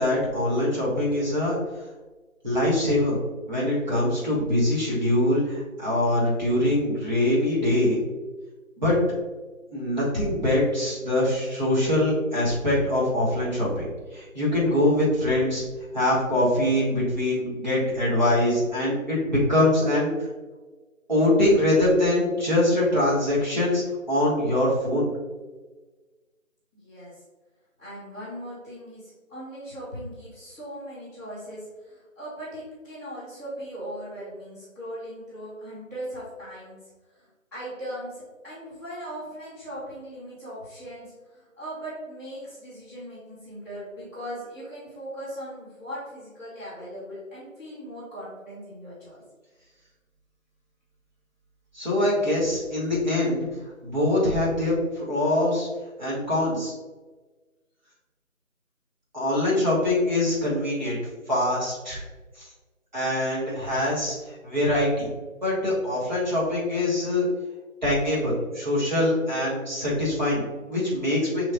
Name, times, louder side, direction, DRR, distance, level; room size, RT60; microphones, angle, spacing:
voice 1, 0.0-1.6 2.4-3.2 3.5-8.0 8.8-9.0 9.7-15.6 15.9-20.1 21.1-23.8 24.1-25.1 51.7-53.5 53.8-55.7 56.0-56.7 59.1-61.0 61.3-62.0 62.4-62.5 62.9-64.1 64.4-65.1 65.4-67.3 67.8-71.5, left 1 dB, 35° right, -7 dB, 1.5 m, -23 dB
voice 2, 26.7-27.1 27.8-36.8 37.1-37.2 37.5-41.0 41.3-49.2, equal, 15° right, -18 dB, 1.3 m, -39 dB
6.1 x 3.2 x 2.5 m, 1.3 s
figure-of-eight pair, 175°, 41 cm